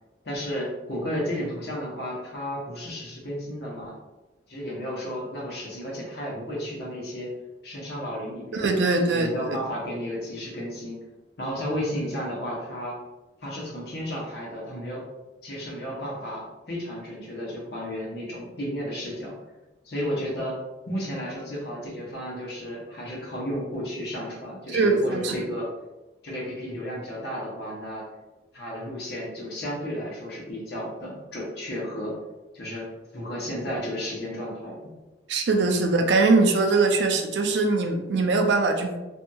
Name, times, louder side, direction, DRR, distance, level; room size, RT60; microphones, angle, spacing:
voice 1, 0.2-3.9 4.5-7.3 7.6-8.7 9.1-11.0 11.4-13.0 13.4-15.1 15.4-19.3 19.8-20.6 20.9-25.7 26.2-28.0 28.5-32.2 32.5-34.8, equal, 60° left, -4 dB, 0.9 m, -33 dB
voice 2, 8.5-9.6 24.7-25.5 35.3-39.0, right 3 dB, 70° right, 4 dB, 0.4 m, -22 dB
2.7 x 2.6 x 2.3 m, 1.1 s
head